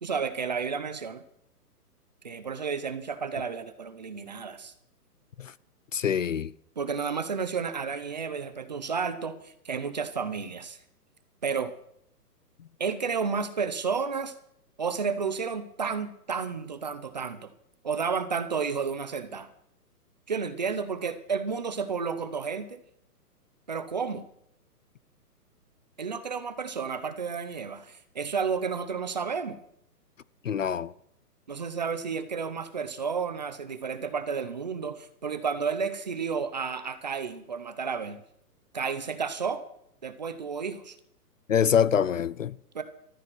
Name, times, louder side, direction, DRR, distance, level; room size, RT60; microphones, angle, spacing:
voice 1, 0.0-1.2 2.2-4.7 6.8-10.8 11.4-11.7 12.8-14.3 14.8-17.5 17.8-19.5 20.3-22.8 23.7-24.2 26.0-29.6 31.5-38.2 38.7-39.6 40.0-41.0 42.7-42.8, right 5 dB, 25° right, 0.8 m, -31 dB
voice 2, 5.9-6.5 30.4-30.9 41.5-42.6, left 8 dB, 55° left, 0.5 m, -25 dB
14.0 x 13.0 x 6.2 m
hypercardioid pair, 175°, 48 cm